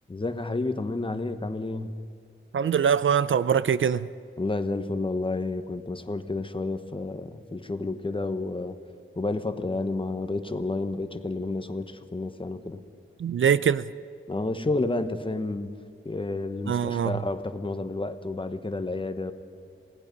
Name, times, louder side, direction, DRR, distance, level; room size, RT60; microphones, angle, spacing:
voice 1, 0.1-1.9 4.4-8.8 9.2-12.8 14.3-15.7 16.0-19.3, left 2 dB, 25° left, 1.1 m, -30 dB
voice 2, 2.5-4.1 13.2-13.8 16.7-17.2, right 8 dB, 70° right, 0.5 m, -23 dB
27.5 x 18.5 x 5.3 m
wide cardioid pair, 115°, 21 cm